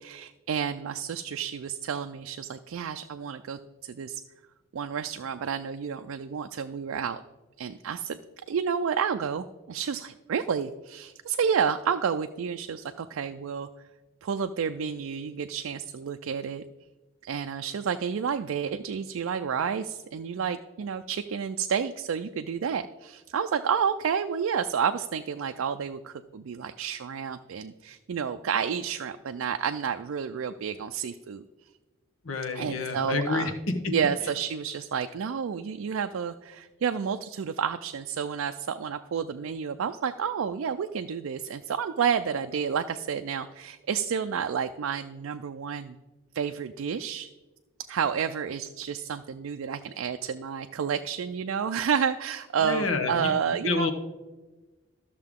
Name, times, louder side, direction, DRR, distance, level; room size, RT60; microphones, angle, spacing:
voice 1, 0.0-4.2 4.7-7.2 7.6-8.2 8.5-13.7 14.2-16.6 17.2-31.4 32.5-33.5 33.9-46.0 46.3-47.3 47.8-53.9, right 7 dB, 80° right, 8 dB, 0.4 m, -30 dB
voice 2, 32.2-33.5 52.6-53.3 53.6-53.9, left 3 dB, 75° left, 6 dB, 1.1 m, -28 dB
13.5 x 6.6 x 3.6 m, 1.2 s
head